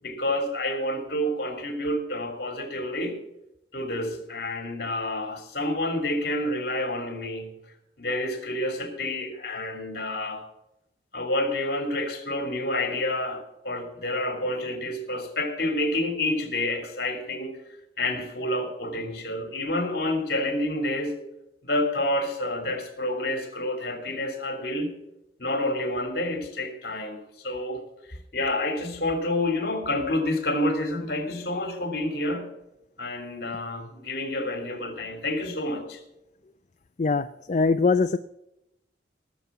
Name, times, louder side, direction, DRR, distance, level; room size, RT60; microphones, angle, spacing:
voice 1, 0.0-3.2 3.7-7.5 8.0-10.5 11.1-17.6 18.0-21.1 21.6-24.9 25.4-27.8 28.1-32.5 33.0-36.0, left 1 dB, 55° left, 5 dB, 3.1 m, -29 dB
voice 2, 37.0-38.2, left 4 dB, 40° left, 10 dB, 0.4 m, -22 dB
18.0 x 7.1 x 8.4 m, 0.86 s
head